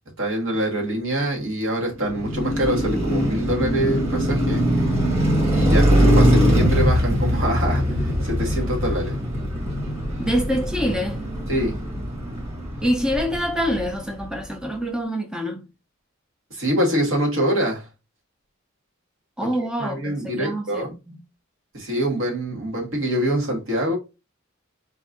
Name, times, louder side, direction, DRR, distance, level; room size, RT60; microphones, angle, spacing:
voice 1, 0.2-4.7 5.5-9.2 11.5-11.8 16.5-17.9 19.4-20.9 21.7-24.0, right 1 dB, 70° right, 1.7 m, -25 dB
Car passing by, 2.0-14.2, equal, 30° right, 1.5 m, -22 dB
voice 2, 10.2-11.2 12.8-15.6 19.4-21.2, equal, 5° right, 0.5 m, -26 dB
4.5 x 2.7 x 3.5 m
head